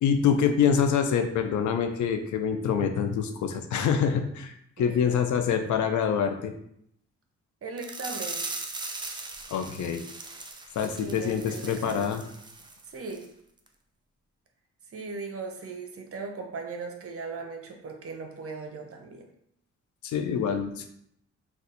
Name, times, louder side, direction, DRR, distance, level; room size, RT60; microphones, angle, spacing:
voice 1, 0.0-6.5 9.5-10.0 10.8-12.2 20.0-20.9, left 7 dB, 80° left, 7 dB, 0.5 m, -26 dB
voice 2, 4.8-5.2 7.6-8.5 10.9-12.2 12.8-13.3 14.9-19.3, right 4 dB, 50° right, 3 dB, 0.7 m, -38 dB
sound 1, 7.8-12.8 13.1-13.3 13.7-13.8, right 3 dB, 15° right, 0.4 m, -39 dB
2.5 x 2.3 x 4.0 m, 0.71 s
cardioid pair, 75°, 29 cm